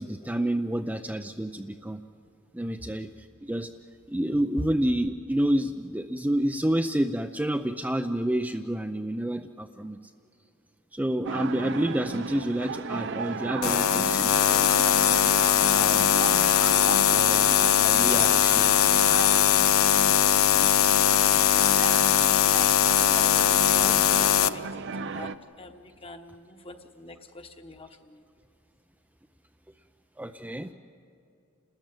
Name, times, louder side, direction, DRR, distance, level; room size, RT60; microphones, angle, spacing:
voice 1, 0.0-2.0 2.5-3.7 4.1-10.0 10.9-15.1 15.7-16.2 17.1-18.7 30.2-30.7, right 1 dB, 10° right, 5 dB, 0.5 m, -29 dB
sound 1, 11.3-25.4, right 4 dB, 60° right, 0.6 m, -34 dB
sound 2, 13.6-24.5, left 10 dB, 85° left, 0.6 m, -21 dB
voice 2, 23.2-28.2, left 2 dB, 25° left, 6 dB, 1.2 m, -43 dB
29.5 x 13.5 x 8.9 m, 2.6 s
head